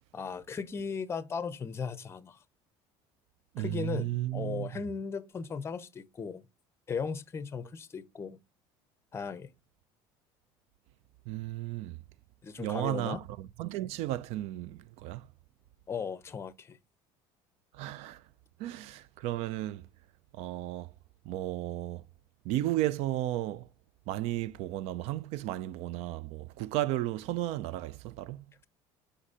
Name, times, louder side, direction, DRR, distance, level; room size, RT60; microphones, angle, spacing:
voice 1, 0.1-2.4 3.6-6.4 6.9-8.4 9.1-9.5 12.4-13.2 15.9-16.8, left 5 dB, 20° left, 0.6 m, -37 dB
voice 2, 3.5-4.7 11.3-12.0 12.6-15.3 17.7-18.2 18.6-19.9 20.3-20.9 21.2-22.0 22.4-23.7 24.1-28.5, right 15 dB, 65° right, 0.4 m, -34 dB
5.1 x 4.2 x 4.9 m
cardioid pair, 125°, 12 cm